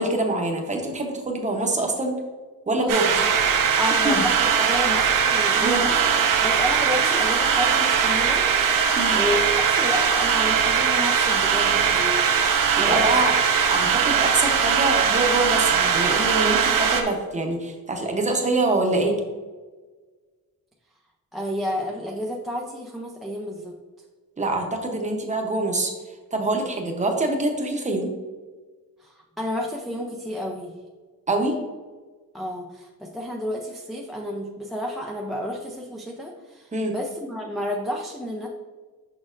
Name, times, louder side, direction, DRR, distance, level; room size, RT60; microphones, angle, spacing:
voice 1, 0.0-2.1 2.7-3.1 4.0-4.3 5.5-5.8 9.0-9.2 12.8-13.4 13.7-19.2 24.4-25.9 26.3-28.1 31.3-31.6 36.7-36.9, right 2 dB, 20° right, 2 dB, 0.8 m, -25 dB
voice 2, 2.8-3.3 3.8-6.0 6.4-8.4 9.1-12.2 12.8-13.2 21.3-23.8 29.0-30.7 32.3-38.5, left 1 dB, ahead, -1 dB, 0.4 m, -30 dB
sound 1, 2.9-17.0, right 7 dB, 60° right, 0.8 m, -20 dB
6.4 x 5.9 x 2.5 m, 1.4 s
cardioid pair, 160°, 36 cm